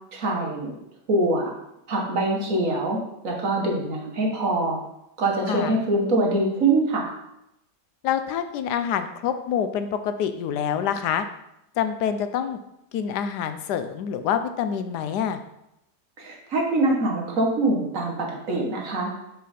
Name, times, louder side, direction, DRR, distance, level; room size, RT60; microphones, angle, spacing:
voice 1, 0.1-0.8 1.1-1.5 1.9-3.0 3.2-4.8 5.2-7.1 16.2-19.1, right 2 dB, 55° right, 0 dB, 1.6 m, -24 dB
voice 2, 5.5-5.8 8.0-11.3 11.8-12.6 12.9-15.4, left 8 dB, 80° left, 9 dB, 1.2 m, -26 dB
5.9 x 5.8 x 4.2 m, 0.84 s
omnidirectional pair, 1.8 m